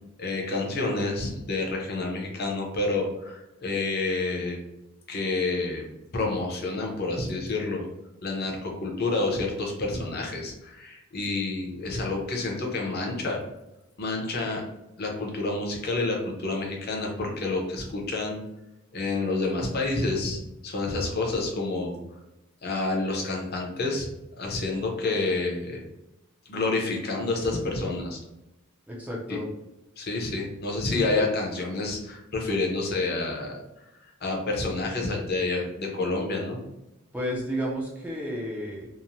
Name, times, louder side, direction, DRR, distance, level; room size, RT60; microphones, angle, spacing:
voice 1, 0.2-4.6 5.1-5.9 6.1-7.9 8.2-13.4 14.0-14.6 15.0-18.4 18.9-22.0 22.6-24.1 24.4-25.8 26.5-28.2 29.3-29.4 30.0-33.6 34.2-36.6, left 3 dB, 45° left, 0 dB, 0.6 m, -28 dB
voice 2, 28.9-29.5 37.1-38.9, equal, 5° right, -4 dB, 0.4 m, -32 dB
2.9 x 2.0 x 2.5 m, 0.92 s
head